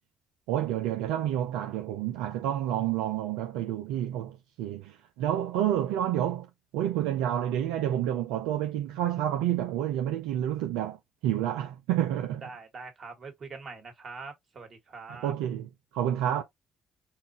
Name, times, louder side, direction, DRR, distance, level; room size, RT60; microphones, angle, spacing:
voice 1, 0.5-11.0 11.2-12.5 15.1-16.4, right 11 dB, 80° right, 0.5 m, -29 dB
voice 2, 12.4-15.3, right 4 dB, 55° right, 2.0 m, -43 dB
5.7 x 2.5 x 2.9 m
hypercardioid pair, 50°, 0 cm